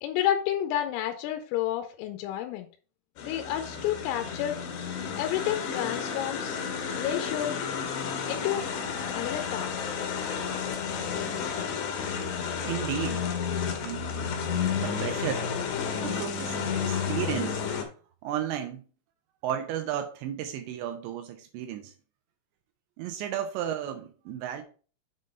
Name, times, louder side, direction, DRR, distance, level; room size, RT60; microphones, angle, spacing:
voice 1, 0.0-2.7 3.2-4.6 5.2-6.6 7.0-7.6 8.3-8.7 9.1-9.8, left 11 dB, 90° left, 3.4 m, -30 dB
sound 1, 3.2-17.8, left 6 dB, 65° left, 3.2 m, -31 dB
voice 2, 12.6-13.3 13.8-14.3 14.7-15.5 16.0-17.6 18.2-18.9 19.4-21.9 23.0-24.6, right 10 dB, 80° right, 2.6 m, -33 dB
7.9 x 3.8 x 5.2 m
omnidirectional pair, 6.0 m